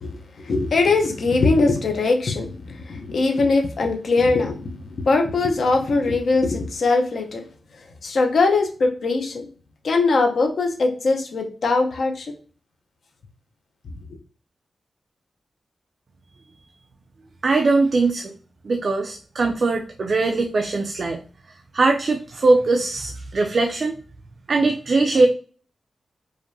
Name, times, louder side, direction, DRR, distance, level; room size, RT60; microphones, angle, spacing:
voice 1, 0.0-7.4 8.0-9.5 9.8-12.3, left 3 dB, 65° left, 3 dB, 0.8 m, -21 dB
voice 2, 17.4-18.3 18.6-21.2 21.7-24.0 24.5-25.3, right 3 dB, 45° right, 4 dB, 0.4 m, -20 dB
4.9 x 2.6 x 2.6 m, 0.40 s
wide cardioid pair, 160°, 0 cm